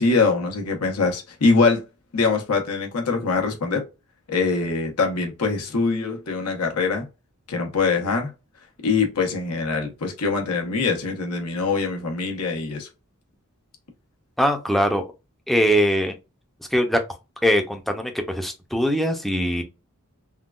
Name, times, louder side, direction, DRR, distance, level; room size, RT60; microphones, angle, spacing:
voice 1, 0.0-1.8 2.1-3.8 4.3-7.1 7.5-8.3 8.8-12.9, left 4 dB, 80° left, 1.0 m, -23 dB
voice 2, 14.4-15.0 15.5-16.1 16.7-17.0 17.4-19.6, equal, ahead, 0.6 m, -21 dB
3.7 x 2.3 x 2.3 m
head